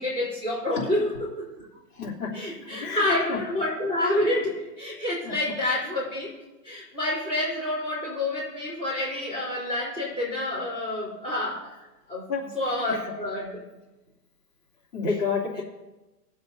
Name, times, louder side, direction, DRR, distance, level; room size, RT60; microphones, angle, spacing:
voice 1, 0.0-1.5 2.3-6.3 6.6-11.7 12.1-12.3 12.5-13.6, left 1 dB, 10° left, -8 dB, 3.8 m, -28 dB
voice 2, 1.9-2.3 2.7-3.0 3.3-3.4 5.2-5.3 12.3-12.5 12.9-13.0 14.9-15.6, left 5 dB, 65° left, -4 dB, 3.1 m, -29 dB
21.5 x 7.5 x 2.8 m, 1.1 s
hypercardioid pair, 155°, 48 cm